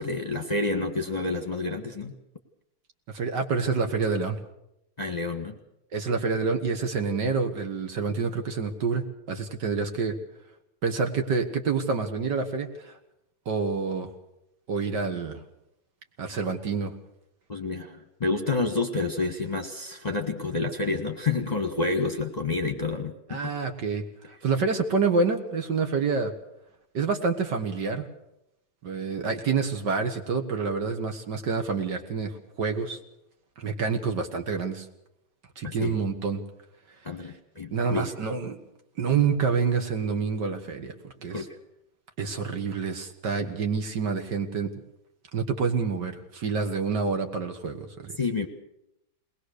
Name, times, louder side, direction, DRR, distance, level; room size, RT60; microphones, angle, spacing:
voice 1, 0.0-2.1 5.0-5.6 17.5-23.5 35.6-36.0 37.0-38.1 41.3-41.6 48.2-48.5, left 3 dB, 20° left, 2 dB, 1.5 m, -29 dB
voice 2, 3.1-4.4 5.9-10.1 10.8-13.0 13.5-14.1 14.7-15.4 16.2-16.9 23.3-26.3 26.9-28.0 28.8-33.0 33.6-34.9 35.6-36.4 37.7-38.6 39.0-41.5 42.2-44.7 45.3-48.2, right 5 dB, 60° right, 5 dB, 2.2 m, -27 dB
21.5 x 19.5 x 6.6 m, 0.84 s
omnidirectional pair, 2.2 m